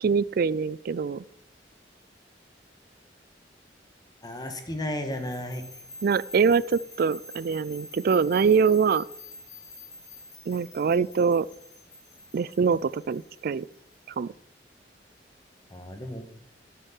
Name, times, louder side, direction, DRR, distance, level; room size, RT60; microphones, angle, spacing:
voice 1, 0.0-1.2 6.0-9.0 10.5-11.5 12.3-13.7 14.2-14.3, right 5 dB, 55° right, 20 dB, 0.4 m, -24 dB
voice 2, 4.2-5.6 15.7-16.2, left 1 dB, 25° left, 6 dB, 1.6 m, -33 dB
sound 1, 5.1-14.2, left 2 dB, 45° left, 3.8 m, -47 dB
12.0 x 7.8 x 4.5 m, 0.77 s
head